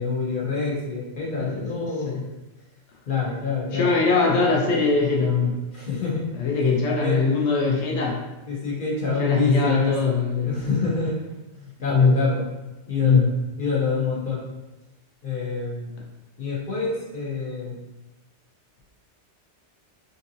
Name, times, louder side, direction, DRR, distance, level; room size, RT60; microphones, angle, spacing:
voice 1, 0.0-2.2 3.1-3.9 5.7-6.3 7.0-7.2 8.5-10.1 10.4-11.2 11.6-12.4 12.9-13.2 13.6-14.4 15.2-15.9 16.4-17.8, left 4 dB, 50° left, -5 dB, 0.9 m, -26 dB
voice 2, 3.7-5.6 6.4-8.2 9.2-10.5 11.9-12.2 13.0-13.2, left 4 dB, 75° left, -1 dB, 1.0 m, -21 dB
3.6 x 2.7 x 2.6 m, 1.0 s
omnidirectional pair, 1.2 m